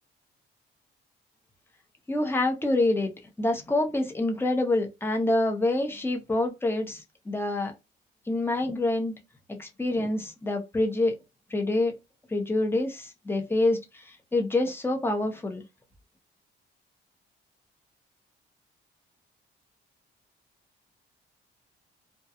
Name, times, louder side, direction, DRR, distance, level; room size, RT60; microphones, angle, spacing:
voice 1, 2.1-3.1 3.4-7.7 8.3-9.1 9.6-11.1 11.5-11.9 12.3-15.6, left 2 dB, 10° left, 0.7 m, -26 dB
2.4 x 2.2 x 2.8 m
cardioid pair, 90°, 20 cm